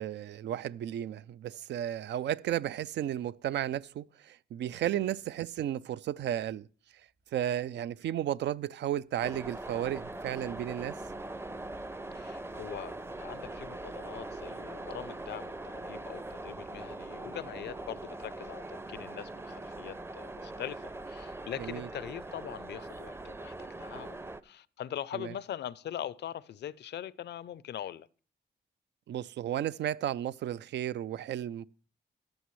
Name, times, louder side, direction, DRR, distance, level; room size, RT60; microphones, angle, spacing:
voice 1, 0.0-6.7 7.3-11.0 21.6-21.9 25.1-25.3 29.1-31.7, right 11 dB, 80° right, 0.4 m, -33 dB
sound 1, 7.2-7.4 8.3-8.4 8.8-18.6, right 4 dB, 55° right, 3.2 m, -58 dB
sound 2, 9.2-24.4, right 2 dB, 15° right, 0.5 m, -42 dB
voice 2, 12.1-12.9 13.2-28.1, left 11 dB, 75° left, 0.5 m, -42 dB
14.0 x 10.5 x 3.1 m
cardioid pair, 80°, 18 cm